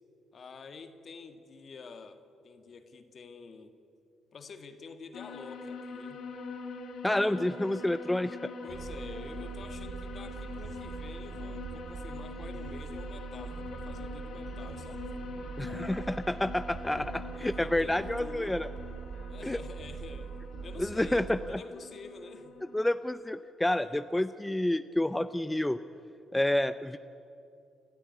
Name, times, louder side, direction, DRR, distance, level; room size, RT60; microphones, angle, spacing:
voice 1, 0.3-3.8 4.3-6.3 7.2-7.5 8.6-15.0 17.3-18.7 19.3-22.6 23.7-24.0, left 4 dB, 50° left, 8 dB, 1.9 m, -48 dB
sound 1, 5.1-22.9, left 4 dB, 70° left, 1.9 m, -44 dB
voice 2, 7.0-8.5 15.6-18.7 19.4-19.6 20.8-21.6 22.7-25.8 26.3-27.0, left 1 dB, 10° left, 11 dB, 0.5 m, -29 dB
sound 2, 8.7-21.6, right 6 dB, 55° right, 0.5 m, -42 dB
29.5 x 13.0 x 9.4 m, 2.8 s
cardioid pair, 90°, 0 cm